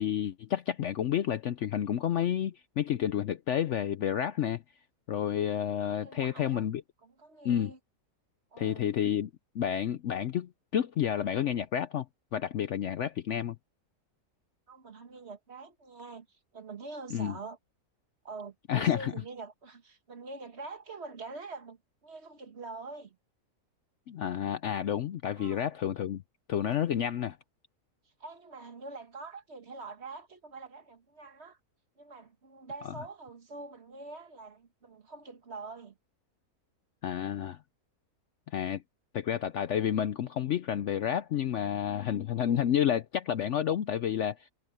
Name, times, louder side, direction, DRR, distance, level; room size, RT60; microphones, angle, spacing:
voice 1, 0.0-4.6 5.1-6.8 7.4-7.7 8.6-9.3 9.5-12.1 12.3-13.6 17.1-17.3 18.7-19.1 24.1-26.2 26.5-27.4 32.8-32.9 37.0-37.6 38.5-38.8 39.1-44.5, left 10 dB, 65° left, 0.8 m, -30 dB
voice 2, 6.0-6.6 7.0-7.8 8.5-8.9 14.7-17.6 18.2-23.2 25.4-25.7 28.2-31.6 32.0-36.0, right 3 dB, 45° right, 1.7 m, -45 dB
omnidirectional pair, 1.7 m